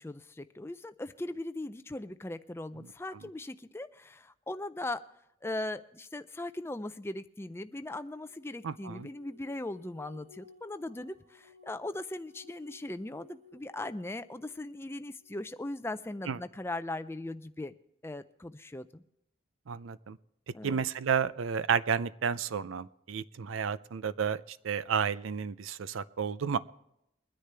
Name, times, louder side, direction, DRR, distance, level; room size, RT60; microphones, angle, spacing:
voice 1, 0.0-5.0 5.4-17.7 18.0-19.0 20.5-20.8, left 2 dB, 10° left, 11 dB, 0.4 m, -39 dB
sound 1, 7.5-15.3, left 3 dB, 40° right, 1.6 m, -59 dB
voice 2, 8.6-9.1 16.3-16.4 19.7-20.2 20.6-26.6, right 6 dB, 85° right, 16 dB, 0.5 m, -31 dB
22.5 x 9.9 x 3.4 m, 0.81 s
head